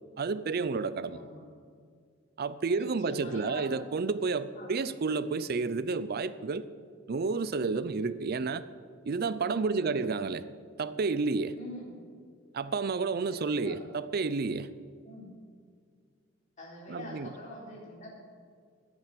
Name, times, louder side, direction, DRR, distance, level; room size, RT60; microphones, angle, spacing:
voice 1, 0.2-1.2 2.4-6.6 7.1-8.6 9.0-10.4 10.8-11.6 12.5-14.7 16.9-17.3, right 4 dB, 50° right, 15 dB, 0.5 m, -30 dB
voice 2, 1.1-1.4 2.8-3.8 4.6-4.7 9.7-10.0 11.6-12.0 13.3-13.8 15.0-15.3 16.6-18.2, left 1 dB, 40° left, -4 dB, 4.0 m, -45 dB
10.5 x 9.1 x 8.3 m, 2.1 s
head